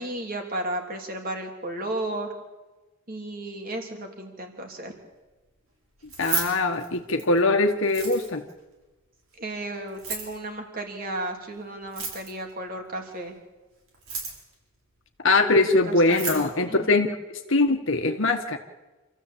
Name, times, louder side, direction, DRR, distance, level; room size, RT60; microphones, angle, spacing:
voice 1, 0.0-2.3 3.1-4.9 9.4-13.4 15.6-16.9, right 1 dB, 40° right, 3 dB, 3.4 m, -34 dB
Keys jangling, 6.0-7.4 7.8-8.5 9.9-10.4 11.8-12.5 13.9-14.5 15.7-15.8 16.0-16.5, right 4 dB, 70° right, 7.3 m, -32 dB
voice 2, 6.2-8.4 15.2-17.2 17.5-18.6, left 2 dB, 60° left, 5 dB, 1.4 m, -22 dB
27.5 x 14.5 x 8.7 m, 1.2 s
head